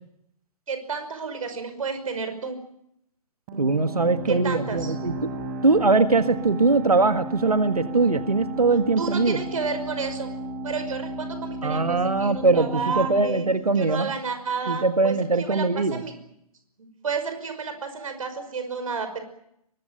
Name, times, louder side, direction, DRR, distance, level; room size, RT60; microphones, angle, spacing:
voice 1, 0.7-2.6 4.3-4.9 9.0-10.3 10.6-13.5 13.8-16.1 16.8-19.2, right 5 dB, 65° right, 9 dB, 5.6 m, -31 dB
sound 1, 3.5-14.9, right 1 dB, 35° right, 6.4 m, -35 dB
voice 2, 3.6-5.3 5.6-9.4 11.6-14.1 14.7-16.0, right 3 dB, 85° right, 9 dB, 1.8 m, -21 dB
23.5 x 21.0 x 9.1 m, 0.76 s
figure-of-eight pair, 125°, 19 cm